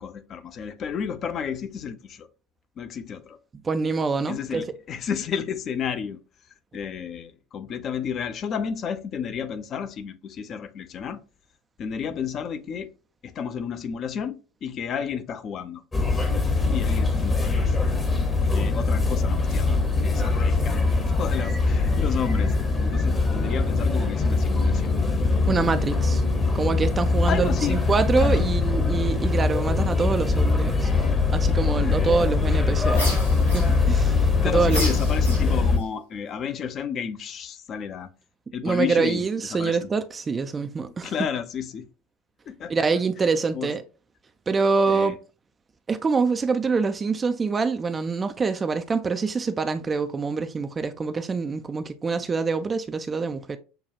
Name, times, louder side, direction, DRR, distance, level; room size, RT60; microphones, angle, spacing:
voice 1, 0.0-2.3 2.8-3.4 4.3-6.2 6.7-11.2 11.8-12.9 13.2-15.8 16.7-17.7 18.4-20.9 21.2-22.5 22.8-24.9 27.2-27.8 28.1-28.5 34.4-38.1 38.5-39.2 39.5-39.9 41.0-41.8 42.5-42.9 43.5-43.7 44.9-45.2, left 7 dB, 35° left, 0.5 m, -32 dB
voice 2, 3.6-4.7 25.5-26.2 26.5-30.9 31.3-33.0 33.5-34.8 38.6-41.1 42.7-43.8 44.5-45.2 45.9-53.6, right 4 dB, 20° right, 0.4 m, -25 dB
sound 1, 15.9-35.8, left 3 dB, 20° left, 0.9 m, -22 dB
sound 2, 32.9-34.1 34.7-35.8, equal, 90° left, 1.6 m, -33 dB
6.7 x 2.3 x 2.7 m
figure-of-eight pair, 70°, 0 cm